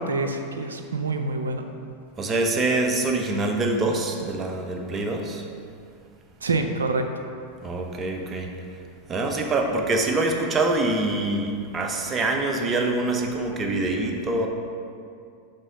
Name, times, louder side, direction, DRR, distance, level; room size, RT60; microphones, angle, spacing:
voice 1, 0.0-1.7 6.4-7.1, right 3 dB, 90° right, 6 dB, 0.4 m, -26 dB
voice 2, 2.2-5.4 7.6-8.5 9.1-14.5, right 2 dB, 25° right, 2 dB, 0.8 m, -25 dB
5.5 x 3.6 x 5.3 m, 2.4 s
hypercardioid pair, 95°, 0 cm